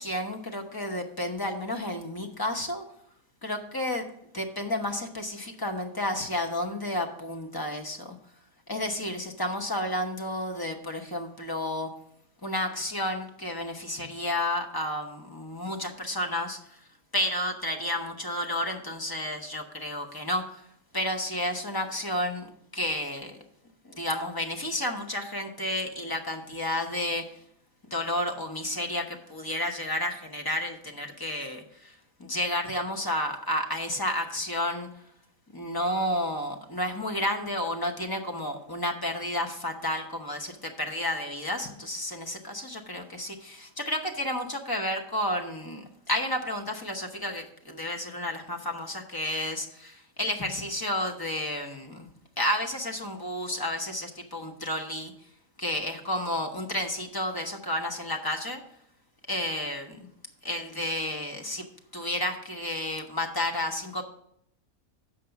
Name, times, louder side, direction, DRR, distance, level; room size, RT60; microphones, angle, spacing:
voice 1, 0.0-2.8 3.4-4.1 4.3-8.2 8.7-11.9 12.4-16.8 17.1-20.6 20.9-23.4 23.8-27.3 27.9-31.9 32.2-34.9 35.5-52.1 52.4-55.1 55.6-58.6 59.3-60.1 60.4-61.7 61.9-64.0, left 1 dB, 20° left, 4 dB, 0.8 m, -31 dB
7.4 x 5.1 x 6.9 m, 0.71 s
omnidirectional pair, 1.5 m